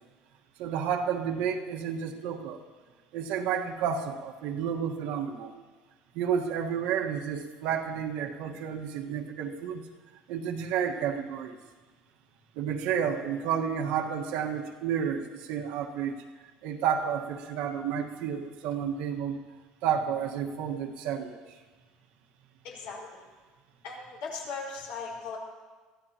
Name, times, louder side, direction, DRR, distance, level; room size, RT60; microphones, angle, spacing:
voice 1, 0.6-2.6 3.1-5.5 6.1-9.8 10.3-11.6 12.5-16.2 16.6-19.4 19.8-21.4, right 8 dB, 80° right, 2 dB, 1.5 m, -31 dB
voice 2, 22.6-23.3 23.8-25.4, left 4 dB, 80° left, -2 dB, 4.9 m, -38 dB
23.5 x 15.0 x 3.0 m, 1.4 s
cardioid pair, 155°, 3 cm